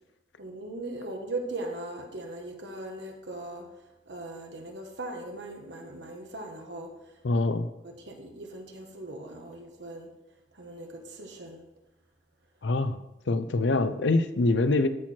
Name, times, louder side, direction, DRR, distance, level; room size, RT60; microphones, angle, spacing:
voice 1, 0.4-3.7 4.1-6.9 7.8-10.1 10.5-11.6, right 2 dB, 75° right, 3 dB, 1.4 m, -39 dB
voice 2, 7.2-7.7 12.6-13.0 13.3-14.9, left 2 dB, 85° left, 11 dB, 0.6 m, -24 dB
13.5 x 4.6 x 4.4 m, 0.98 s
head